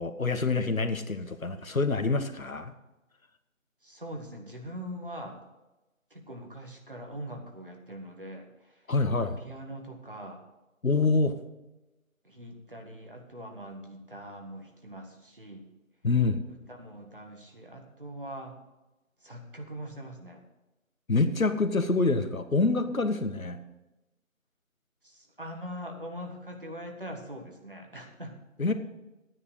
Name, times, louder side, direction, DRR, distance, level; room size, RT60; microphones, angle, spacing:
voice 1, 0.0-2.7 8.9-9.4 10.8-11.4 16.0-16.4 21.1-23.6 28.6-28.7, left 3 dB, 80° left, 9 dB, 1.4 m, -26 dB
voice 2, 3.8-5.4 6.1-8.8 9.4-10.4 12.2-15.6 16.5-18.6 19.2-20.4 25.0-28.4, equal, 40° right, 3 dB, 1.6 m, -42 dB
11.0 x 9.7 x 4.7 m, 1.0 s
figure-of-eight pair, 180°, 41 cm